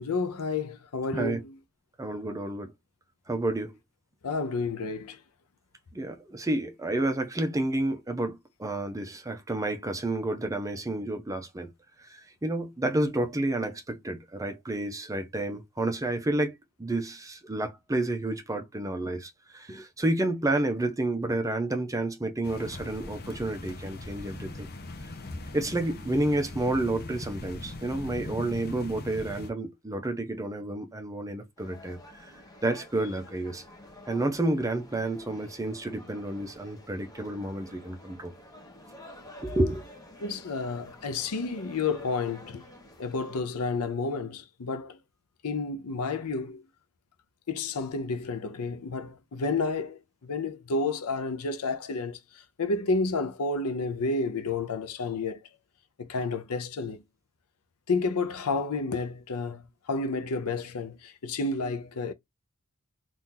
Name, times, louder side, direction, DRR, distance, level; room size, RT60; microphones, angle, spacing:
voice 1, 0.0-1.6 4.2-5.2 40.2-42.6 43.0-45.0 45.4-46.6 47.5-55.4 56.0-57.0 57.9-62.1, left 3 dB, 85° left, 0.6 m, -31 dB
voice 2, 2.0-2.7 3.3-3.7 5.9-11.7 12.0-24.7 25.5-32.3 32.6-33.6 34.1-38.3 39.4-39.8, right 2 dB, 15° right, 0.5 m, -30 dB
sound 1, 22.4-29.5, left 2 dB, 45° left, 0.7 m, -40 dB
sound 2, 31.6-43.4, left 1 dB, 15° left, 0.9 m, -50 dB
2.8 x 2.6 x 3.6 m
head